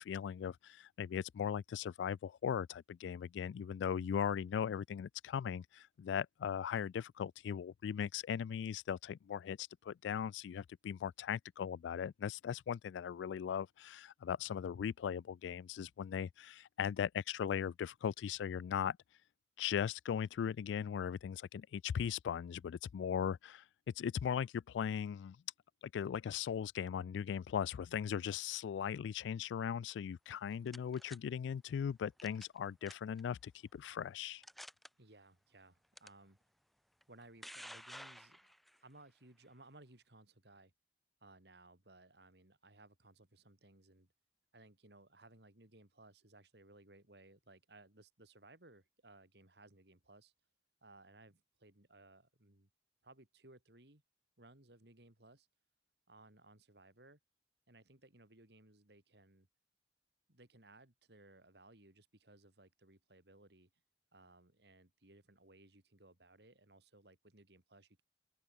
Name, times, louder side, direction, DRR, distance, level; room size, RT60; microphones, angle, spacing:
voice 1, 0.0-19.0 19.6-23.6 24.0-25.4 25.8-34.4, left 8 dB, 85° left, 0.3 m, -38 dB
sound 1, 30.3-31.2 32.2-32.6 32.9-33.2 33.8-33.9 34.4-34.9 36.0-36.1 37.0-38.8, equal, ahead, 0.4 m, -52 dB
voice 2, 35.0-36.4 37.1-38.5 38.8-40.7 41.2-44.1 44.5-50.3 50.8-52.7 53.0-54.0 54.4-55.5 56.1-57.2 57.7-59.5 60.3-63.7 64.1-68.0, right 2 dB, 65° right, 3.4 m, -61 dB
open air
head